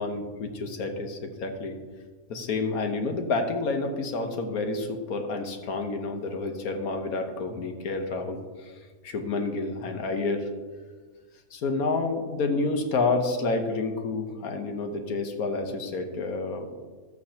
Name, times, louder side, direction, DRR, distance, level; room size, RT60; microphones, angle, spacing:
voice 1, 0.0-1.8 2.3-10.5 11.5-16.7, left 3 dB, 80° left, 5 dB, 1.4 m, -29 dB
13.5 x 8.4 x 2.8 m, 1.4 s
omnidirectional pair, 1.6 m